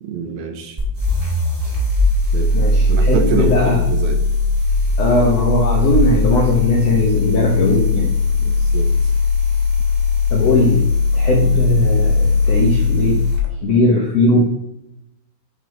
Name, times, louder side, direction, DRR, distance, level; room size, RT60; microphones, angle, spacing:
voice 1, 0.0-0.8 2.3-2.5 2.9-4.2 8.4-8.9, right 5 dB, 75° right, 5 dB, 2.5 m, -25 dB
sound 1, 0.8-13.4, left 3 dB, 45° right, 0.6 m, -18 dB
voice 2, 2.5-3.8 5.0-8.1 10.3-10.8 11.1-14.4, left 2 dB, 90° left, 0 dB, 1.4 m, -18 dB
10.5 x 4.0 x 4.5 m, 0.84 s
omnidirectional pair, 4.6 m